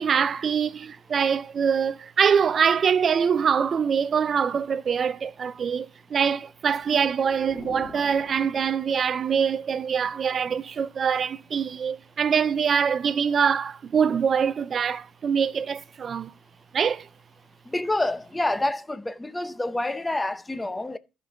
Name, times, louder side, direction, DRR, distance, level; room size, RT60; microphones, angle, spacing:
voice 1, 0.0-16.3 16.7-17.1, right 7 dB, 40° right, 0.4 m, -24 dB
sound 1, 6.5-9.2, left 4 dB, 25° left, 2.0 m, -45 dB
voice 2, 17.7-21.0, left 2 dB, 10° left, 0.7 m, -27 dB
13.0 x 5.2 x 4.9 m
cardioid pair, 125°, 0 cm